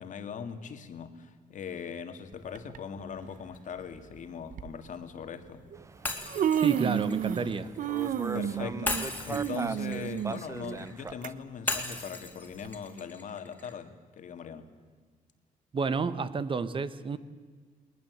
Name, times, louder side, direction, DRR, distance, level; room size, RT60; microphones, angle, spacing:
voice 1, 0.0-5.7 8.3-14.7, left 6 dB, 60° left, 8 dB, 1.9 m, -40 dB
Human voice, 2.5-2.8 3.8-3.9 4.5-4.7 5.7-5.8 6.1-7.5 7.8-11.3 11.7-11.8 12.6-12.7, right 9 dB, 65° right, 1.0 m, -31 dB
sound 1, 5.7-11.3, right 3 dB, 20° right, 0.7 m, -40 dB
Shatter, 6.1-8.1 8.9-11.0 11.7-13.8, left 2 dB, 10° left, 2.8 m, -37 dB
voice 2, 6.5-7.7 15.7-17.2, right 5 dB, 35° right, 14 dB, 1.1 m, -30 dB
21.0 x 20.5 x 8.0 m, 1.6 s
cardioid pair, 115°, 15 cm